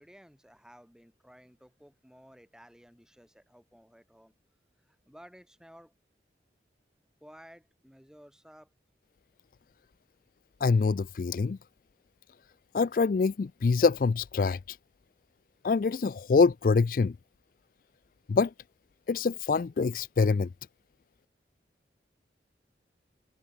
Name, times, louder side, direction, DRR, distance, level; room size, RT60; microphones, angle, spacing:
voice 1, 0.0-4.3 4.8-5.9 7.2-8.7, equal, 5° right, 4.5 m, -55 dB
voice 2, 10.6-11.6 12.7-14.8 15.6-17.2 18.3-18.5 19.1-20.5, left 4 dB, 50° left, 0.3 m, -25 dB
head